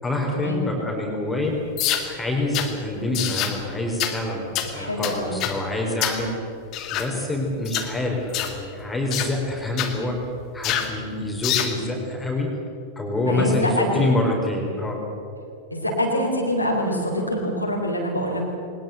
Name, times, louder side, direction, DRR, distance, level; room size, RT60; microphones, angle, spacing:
voice 1, 0.0-1.6 2.0-6.3 6.9-10.2 10.5-12.5 13.0-15.0, left 2 dB, 10° left, 0 dB, 4.4 m, -26 dB
sound 1, 1.8-2.1 2.5-2.7 3.1-3.6 4.0-4.2 4.5-4.7 5.0-5.6 6.0-6.2 6.7-7.1 7.6-7.9 8.3-8.6 9.1-9.3 9.8-9.9 10.6-10.9 11.4-11.8, left 11 dB, 40° left, 2.3 m, -26 dB
voice 2, 4.7-5.3 13.2-14.1 15.7-18.4, equal, 85° left, -1 dB, 4.3 m, -25 dB
21.5 x 20.5 x 8.0 m, 2.7 s
figure-of-eight pair, 90°, 0 cm